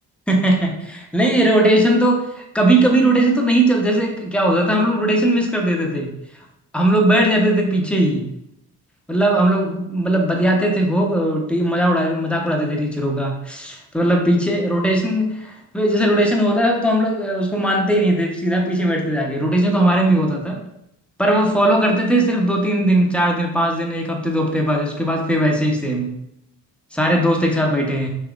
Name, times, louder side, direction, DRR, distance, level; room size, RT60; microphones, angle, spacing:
voice 1, 0.3-6.1 6.7-8.3 9.1-20.6 21.2-26.1 26.9-28.1, right 1 dB, 5° left, 0 dB, 0.7 m, -18 dB
3.6 x 2.9 x 2.4 m, 0.80 s
hypercardioid pair, 45°, 45 cm